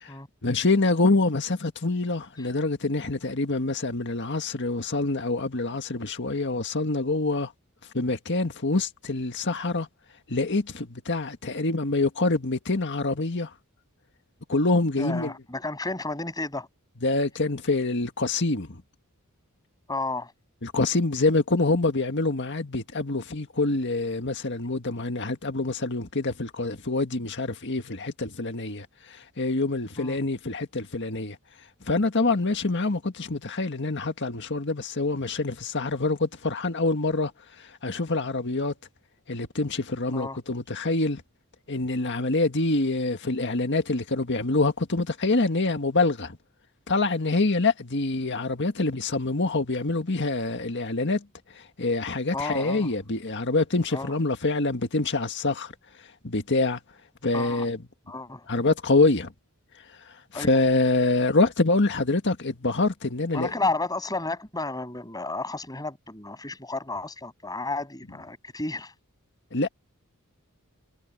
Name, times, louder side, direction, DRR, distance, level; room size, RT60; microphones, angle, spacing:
voice 1, 0.4-7.5 7.9-9.9 10.3-13.5 14.5-15.3 17.0-18.8 20.6-31.4 31.9-37.3 37.6-38.7 39.3-41.2 41.7-46.4 46.9-51.3 51.5-55.7 56.2-56.8 57.2-57.8 58.5-59.3 60.1-63.5 69.5-69.7, left 2 dB, 55° left, 1.8 m, -26 dB
voice 2, 15.0-16.7 19.9-20.3 30.0-30.2 40.1-40.4 52.3-52.9 53.9-54.1 57.3-57.7 58.1-58.5 60.3-60.6 63.3-68.9, left 2 dB, 20° left, 8.0 m, -32 dB
head